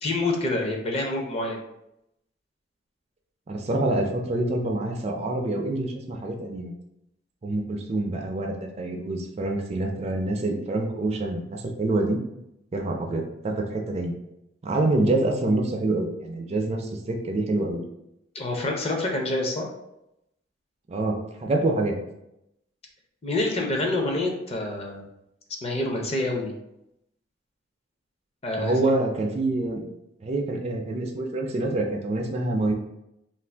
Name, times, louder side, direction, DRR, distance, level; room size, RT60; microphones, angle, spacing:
voice 1, 0.0-1.6 18.3-19.6 23.2-25.0 25.6-26.5 28.4-29.0, left 2 dB, 35° left, 1 dB, 0.5 m, -27 dB
voice 2, 3.5-6.7 7.4-12.2 12.7-14.1 14.6-17.8 20.9-22.0 28.6-29.9 30.2-32.7, right 2 dB, 35° right, 2 dB, 0.4 m, -26 dB
2.5 x 2.4 x 3.3 m, 0.84 s
head